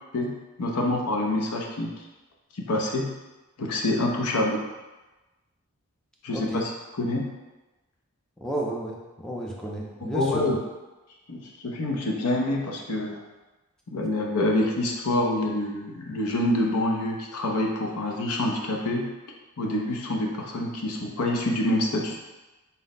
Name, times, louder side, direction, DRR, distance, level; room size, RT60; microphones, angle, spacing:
voice 1, 0.1-1.9 2.5-3.1 3.6-4.6 6.2-7.3 10.1-10.6 11.3-13.2 13.9-19.1 19.6-22.2, left 1 dB, 85° left, 0 dB, 0.7 m, -26 dB
voice 2, 6.3-6.6 8.4-10.5, right 1 dB, 5° left, -3 dB, 0.4 m, -32 dB
4.0 x 2.1 x 4.0 m, 1.1 s
head